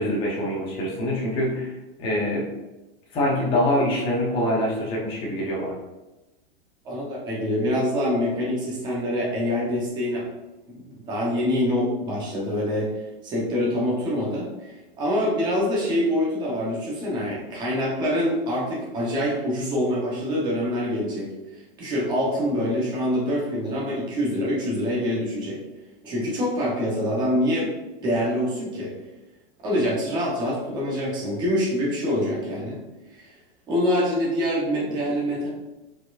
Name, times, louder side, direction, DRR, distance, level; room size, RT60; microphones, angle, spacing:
voice 1, 0.0-2.5 3.1-5.8, left 1 dB, 20° left, -4 dB, 0.9 m, -25 dB
voice 2, 6.8-10.3 10.7-12.9 13.2-14.7 15.0-21.3 21.8-25.6 26.0-27.7 28.0-28.9 29.6-32.8 33.1-33.3 33.7-35.5, equal, 15° right, -4 dB, 0.9 m, -25 dB
4.7 x 4.3 x 2.5 m, 1.1 s
supercardioid pair, 170°, 30 cm